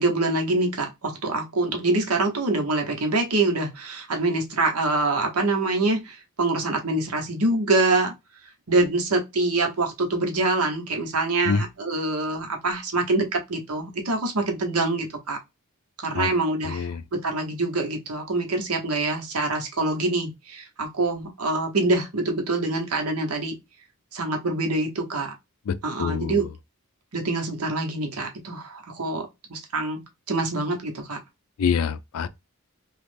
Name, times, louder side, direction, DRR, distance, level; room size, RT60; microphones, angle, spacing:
voice 1, 0.0-8.1 8.7-15.4 16.0-16.9 17.1-23.6 24.1-25.3 25.8-26.5 27.1-31.2, right 2 dB, 90° right, 1.0 m, -25 dB
voice 2, 16.6-17.0 25.7-26.4 31.6-32.3, left 6 dB, 70° left, 0.4 m, -26 dB
3.1 x 2.4 x 3.3 m
head